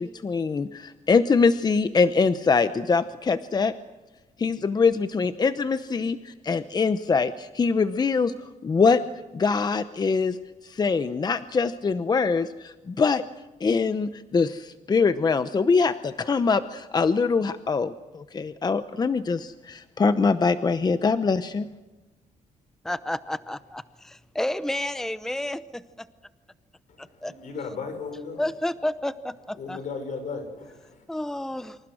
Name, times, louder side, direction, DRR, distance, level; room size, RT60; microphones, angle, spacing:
voice 1, 0.0-3.7 4.4-8.3 8.6-9.0 9.3-10.4 10.6-13.2 13.6-21.7, left 4 dB, 30° left, 0.8 m, -23 dB
voice 2, 22.8-25.8 27.2-27.3 28.4-29.8 31.1-31.8, left 1 dB, 5° left, 0.7 m, -30 dB
voice 3, 27.1-28.4 29.6-31.0, left 4 dB, 75° left, 6.1 m, -35 dB
28.0 x 26.5 x 6.4 m
cardioid pair, 110°, 13 cm